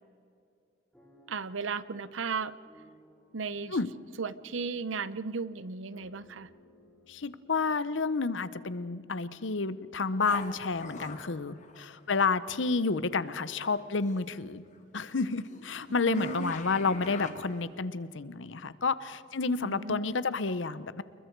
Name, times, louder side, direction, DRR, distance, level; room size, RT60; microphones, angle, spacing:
sound 1, 0.9-9.0 9.6-9.7 10.0-10.3, left 1 dB, 5° left, 6.8 m, -61 dB
voice 1, 1.3-2.6 3.3-3.8 4.2-6.5 16.1-16.5 19.6-20.0, right 4 dB, 80° right, 16 dB, 0.7 m, -35 dB
voice 2, 7.1-14.6 14.9-21.0, left 4 dB, 75° left, 15 dB, 0.9 m, -30 dB
sound 2, 10.2-12.4 13.1-14.3 14.7-17.8, left 3 dB, 40° left, 1.9 m, -45 dB
28.0 x 22.0 x 4.6 m, 2.6 s
head